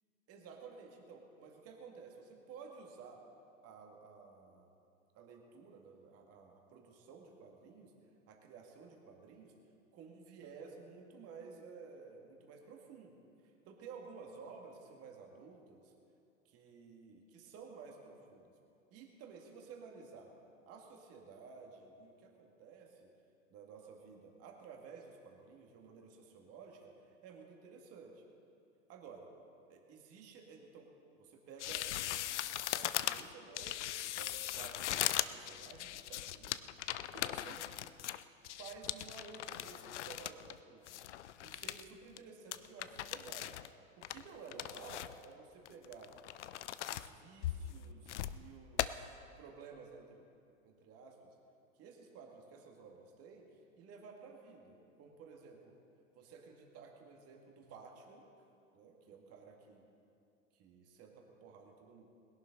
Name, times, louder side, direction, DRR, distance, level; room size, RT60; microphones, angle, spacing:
voice 1, 0.3-3.2 3.6-4.7 5.1-7.9 8.3-9.5 9.9-13.2 13.7-15.9 16.5-18.5 18.9-20.3 20.7-23.1 23.5-26.9 27.2-28.2 28.9-29.3 29.7-30.9 31.2-36.6 37.1-37.6 38.5-40.9 41.4-43.5 44.0-46.1 46.9-50.2 50.6-51.3 51.8-55.8 56.1-58.5 58.7-59.8 60.5-62.0, right 5 dB, 35° right, 1 dB, 2.1 m, -54 dB
sound 1, 31.6-40.6 40.9-41.8 42.2-42.3 42.5-43.7 44.0-45.2 45.7-47.1 47.4-48.4 48.8-48.9, left 13 dB, 60° left, 0.6 m, -39 dB
20.5 x 11.5 x 4.0 m, 2.6 s
figure-of-eight pair, 85°, 40 cm